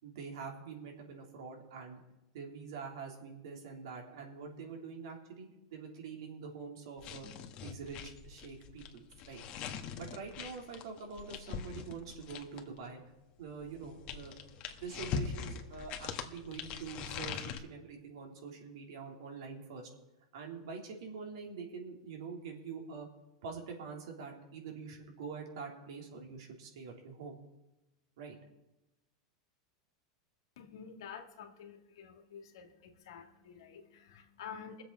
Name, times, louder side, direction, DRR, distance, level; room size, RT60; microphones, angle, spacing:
voice 1, 0.0-2.0 2.3-7.3 7.6-9.4 10.0-13.0 13.4-14.3 14.7-19.9 20.3-23.1 23.4-27.4 28.2-28.4, right 5 dB, 75° right, 0 dB, 3.5 m, -45 dB
sound 1, 7.0-12.8 13.6-17.6, left 7 dB, 45° left, 1.6 m, -42 dB
voice 2, 30.6-34.8, left 7 dB, 80° left, 5 dB, 2.1 m, -49 dB
22.5 x 7.7 x 4.8 m, 0.96 s
hypercardioid pair, 105°, 2 cm